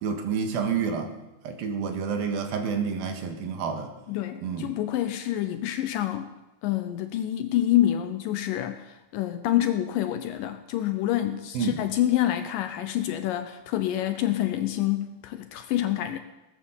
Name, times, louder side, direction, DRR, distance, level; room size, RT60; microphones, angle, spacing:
voice 1, 0.0-1.1 1.4-3.9 4.4-4.7 11.5-11.8, right 6 dB, 75° right, 5 dB, 3.2 m, -29 dB
voice 2, 4.1-6.3 6.6-16.2, left 12 dB, 75° left, 9 dB, 2.1 m, -27 dB
18.0 x 9.4 x 7.2 m, 1.0 s
omnidirectional pair, 4.4 m